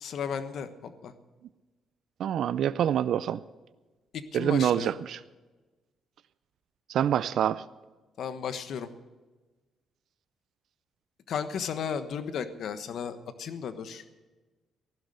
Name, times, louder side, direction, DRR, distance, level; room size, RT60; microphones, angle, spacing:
voice 1, 0.0-1.1 4.3-4.9 8.2-8.9 11.3-14.0, left 7 dB, 65° left, 10 dB, 1.2 m, -34 dB
voice 2, 2.2-3.4 4.3-5.2 6.9-7.6, right 10 dB, 70° right, 16 dB, 0.4 m, -26 dB
15.0 x 12.0 x 6.5 m, 1.2 s
cardioid pair, 90°, 0 cm